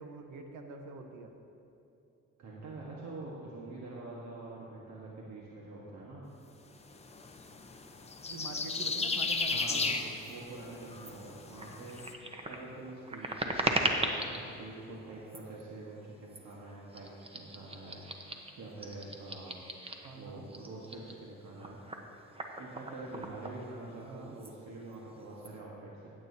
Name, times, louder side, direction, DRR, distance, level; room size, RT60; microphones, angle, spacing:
voice 1, 0.0-1.3 8.3-10.1 14.3-14.5 20.0-20.4 24.1-24.4, right 4 dB, 80° right, 5 dB, 1.1 m, -45 dB
voice 2, 2.4-6.3 9.5-10.0 10.3-19.6 20.1-21.8 22.6-26.1, right 2 dB, 65° right, -4 dB, 1.5 m, -46 dB
sound 1, 6.9-12.1, left 4 dB, 20° left, 0.7 m, -35 dB
sound 2, 11.0-11.1 11.5-14.4 15.2-15.6 16.3-16.5 16.9-20.1 20.5-24.1 24.4-24.5 24.8-25.5, right 1 dB, 20° right, 1.0 m, -38 dB
15.5 x 8.7 x 2.8 m, 2.9 s
cardioid pair, 90°, 30 cm